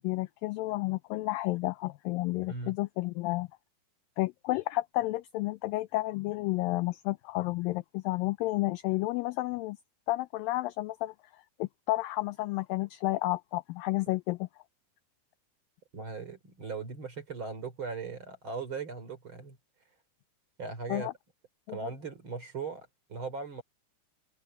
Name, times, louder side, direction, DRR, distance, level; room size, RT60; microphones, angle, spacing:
voice 1, 0.0-3.5 4.2-9.8 10.1-11.1 11.6-14.5 20.9-21.1 21.7-21.8, left 19 dB, 85° left, 2.0 m, -31 dB
voice 2, 15.9-19.6 20.6-21.1 21.7-23.6, right 4 dB, 30° right, 4.0 m, -39 dB
omnidirectional pair, 4.6 m